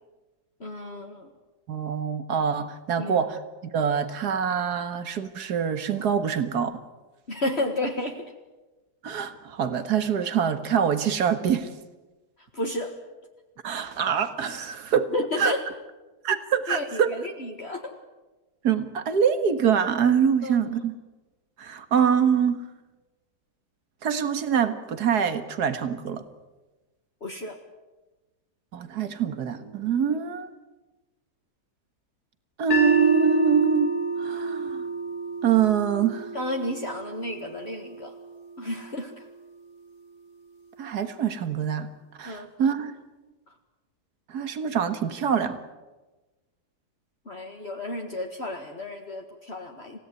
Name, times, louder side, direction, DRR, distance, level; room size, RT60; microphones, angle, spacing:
voice 1, 0.6-1.3 3.0-3.2 7.3-8.3 12.5-12.9 15.1-15.6 16.7-17.9 20.4-20.6 27.2-27.6 36.3-38.1 38.6-39.3 42.2-42.5 47.3-50.0, left 1 dB, 40° left, 2 dB, 2.0 m, -32 dB
voice 2, 1.7-3.4 3.7-6.8 9.0-11.7 13.6-15.5 16.2-17.1 18.6-20.9 21.6-22.6 24.0-26.2 28.7-30.5 32.6-34.8 35.4-36.3 40.8-41.9 42.2-42.9 44.3-45.6, right 7 dB, 75° right, 10 dB, 2.1 m, -25 dB
sound 1, 32.7-38.9, right 3 dB, 65° left, 2.9 m, -29 dB
27.5 x 17.0 x 9.5 m, 1.2 s
omnidirectional pair, 1.7 m